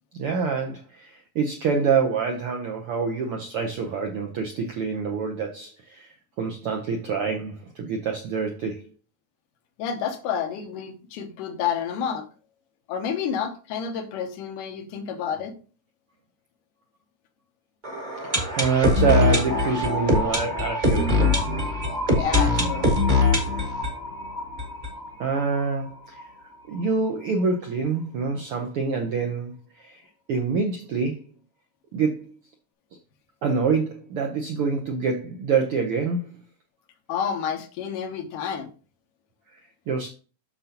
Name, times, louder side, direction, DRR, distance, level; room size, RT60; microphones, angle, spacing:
voice 1, 0.2-8.9 18.6-21.4 25.2-26.3 26.7-29.5 29.8-30.0 30.3-31.2 31.9-32.3 33.4-36.3 39.9-40.1, right 5 dB, 75° right, 1.2 m, -26 dB
voice 2, 9.8-12.3 12.9-15.5 22.2-22.9 37.1-38.7, left 7 dB, 85° left, 2.6 m, -29 dB
sound 1, 17.8-25.6 25.9-26.0 26.2-26.3 26.8-26.9, left 2 dB, 25° right, 0.9 m, -23 dB
7.8 x 6.7 x 2.9 m
omnidirectional pair, 3.6 m